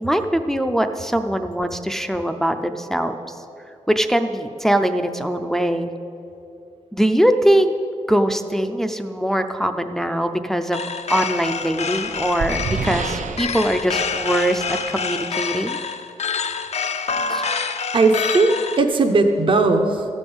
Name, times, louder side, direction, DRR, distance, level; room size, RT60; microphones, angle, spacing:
voice 1, 0.0-3.4 3.9-5.9 6.9-7.7 8.1-10.8 11.1-15.8 17.3-17.4, right 1 dB, 5° left, 6 dB, 0.4 m, -22 dB
sound 1, 10.7-18.8, left 5 dB, 60° left, 0.6 m, -27 dB
sound 2, 11.6-15.2, right 5 dB, 80° right, 0.6 m, -30 dB
voice 2, 17.9-20.0, right 3 dB, 45° right, 4 dB, 0.7 m, -17 dB
13.5 x 5.3 x 8.6 m, 2.6 s
wide cardioid pair, 160°, 13 cm